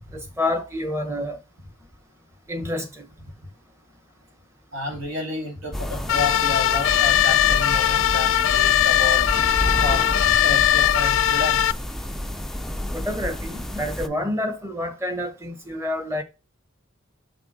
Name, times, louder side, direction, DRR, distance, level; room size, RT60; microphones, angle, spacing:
voice 1, 0.1-1.4 2.5-3.1 12.9-16.2, left 1 dB, 15° right, 1.3 m, -28 dB
voice 2, 4.7-9.3 9.8-11.7, left 3 dB, 70° right, 2.5 m, -30 dB
sound 1, 5.7-14.1, left 1 dB, ahead, 0.5 m, -30 dB
sound 2, 6.1-11.7, left 11 dB, 70° left, 0.4 m, -19 dB
5.9 x 3.7 x 5.8 m
head